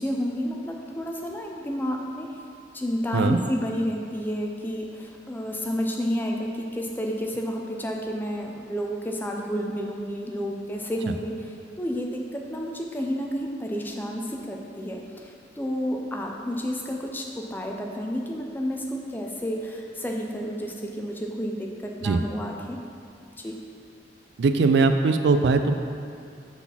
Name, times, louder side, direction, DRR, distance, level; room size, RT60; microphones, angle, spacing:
voice 1, 0.0-2.3 2.7-11.5 11.8-22.8 23.4-23.6, equal, 10° left, 0 dB, 0.4 m, -30 dB
voice 2, 24.4-25.8, right 4 dB, 65° right, 8 dB, 0.3 m, -20 dB
5.8 x 4.1 x 5.7 m, 2.4 s
head